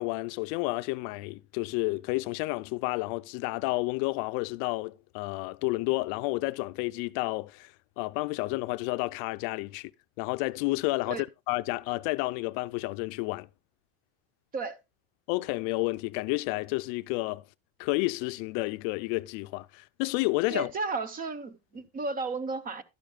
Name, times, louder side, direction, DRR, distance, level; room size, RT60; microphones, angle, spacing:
voice 1, 0.0-9.9 10.2-13.5 15.3-17.4 17.8-20.7, left 23 dB, 60° left, 0.5 m, -31 dB
voice 2, 20.5-22.8, right 3 dB, 25° right, 0.9 m, -33 dB
12.0 x 10.5 x 2.3 m
supercardioid pair, 145°, 32 cm